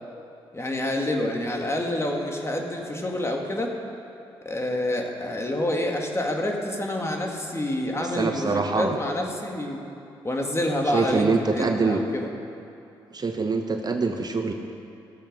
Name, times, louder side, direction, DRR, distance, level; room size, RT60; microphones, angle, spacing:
voice 1, 0.5-3.8 4.5-9.8 10.2-12.3, left 1 dB, 25° left, 1 dB, 1.9 m, -28 dB
voice 2, 8.0-9.0 10.9-12.0 13.1-14.5, right 4 dB, 40° right, 5 dB, 0.9 m, -24 dB
15.0 x 7.3 x 5.3 m, 2.7 s
supercardioid pair, 50°, 11 cm